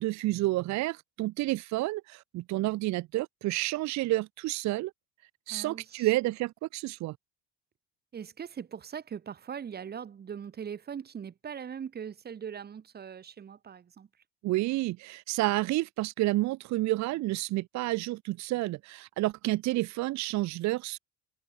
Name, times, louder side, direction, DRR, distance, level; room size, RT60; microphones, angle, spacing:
voice 1, 0.0-4.9 5.5-7.2 14.4-21.0, right 18 dB, 50° right, 0.7 m, -30 dB
voice 2, 5.5-6.1 8.1-14.1, right 7 dB, 30° right, 1.8 m, -41 dB
cardioid pair, 135°, 35 cm